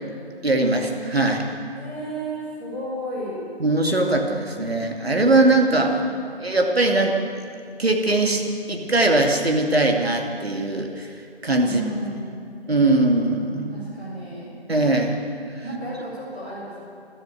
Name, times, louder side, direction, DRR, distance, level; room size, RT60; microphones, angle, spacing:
voice 1, 0.4-1.5 3.6-5.9 6.4-7.1 7.8-8.4 8.7-11.1 11.4-11.8 12.7-13.7 14.7-15.2, right 2 dB, 65° right, 2 dB, 2.4 m, -20 dB
voice 2, 1.7-3.4 5.6-6.5 11.6-12.5 13.7-14.5 15.6-16.8, right 1 dB, 10° right, -11 dB, 2.5 m, -33 dB
13.5 x 13.0 x 8.2 m, 2.4 s
figure-of-eight pair, 175°, 33 cm